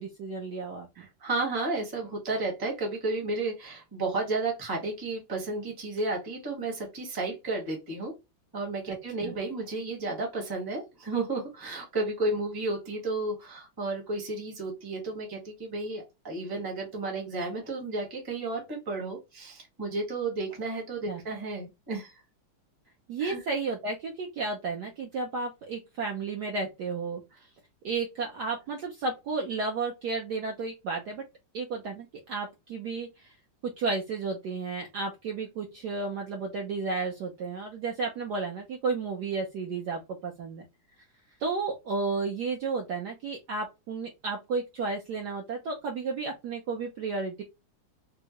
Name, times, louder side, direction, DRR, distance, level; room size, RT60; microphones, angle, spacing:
voice 1, 0.0-0.9 8.9-9.0 9.2-9.3 21.1-21.2 23.1-27.2 27.8-31.2 31.5-33.3 33.8-40.6 41.4-47.4, right 4 dB, 70° right, 1 dB, 1.0 m, -32 dB
voice 2, 1.0-8.1 8.5-22.2 23.2-23.4, right 2 dB, 15° right, 0 dB, 0.7 m, -32 dB
3.6 x 2.1 x 2.8 m, 0.24 s
omnidirectional pair, 2.3 m